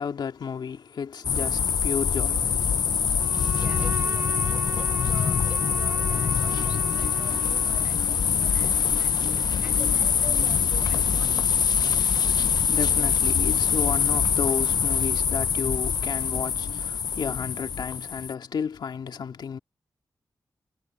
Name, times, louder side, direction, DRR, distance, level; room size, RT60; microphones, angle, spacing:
voice 1, 0.0-2.7 12.1-19.6, left 6 dB, 85° left, 2.6 m, -32 dB
sound 1, 1.2-18.3, left 7 dB, 65° left, 0.6 m, -24 dB
Bowed string instrument, 3.2-8.0, right 3 dB, 35° right, 1.1 m, -37 dB
voice 2, 3.6-11.5, right 2 dB, 15° right, 5.9 m, -46 dB
wide cardioid pair, 145°, 7 cm